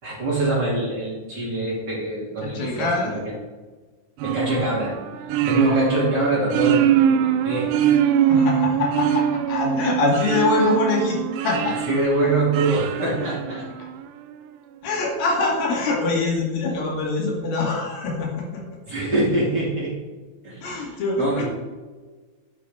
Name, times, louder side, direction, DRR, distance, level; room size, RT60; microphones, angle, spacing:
voice 1, 0.0-3.4 4.2-4.9 5.5-7.7 11.6-13.7 18.9-20.0 20.4-21.5, right 2 dB, 30° right, -6 dB, 2.9 m, -24 dB
voice 2, 2.4-3.1 5.6-5.8 8.2-11.2 11.4-11.7 14.8-18.6 20.6-21.5, left 2 dB, 80° left, -2 dB, 4.3 m, -24 dB
sound 1, 4.2-14.0, right 9 dB, 80° right, 2.0 m, -23 dB
11.0 x 9.4 x 3.6 m, 1.4 s
omnidirectional pair, 4.2 m